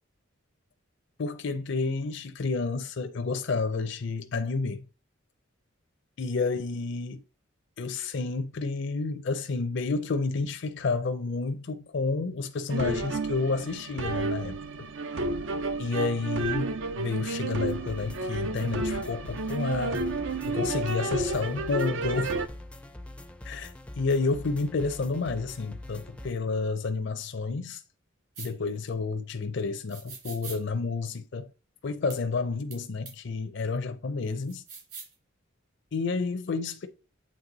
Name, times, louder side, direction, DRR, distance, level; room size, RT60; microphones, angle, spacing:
voice 1, 1.2-4.8 6.2-7.2 7.8-14.6 15.8-20.0 20.4-22.3 23.4-27.8 28.4-31.5 31.8-34.6 35.9-36.9, left 4 dB, 60° left, 0.5 m, -30 dB
sound 1, 12.7-22.5, right 2 dB, 70° right, 0.6 m, -31 dB
sound 2, 17.7-26.3, left 1 dB, 5° left, 0.4 m, -44 dB
sound 3, 28.3-28.5 29.9-30.6 32.1-32.2 32.7-32.8 33.0-33.1 34.5-35.1, right 5 dB, 50° right, 2.5 m, -42 dB
7.5 x 3.2 x 3.9 m
head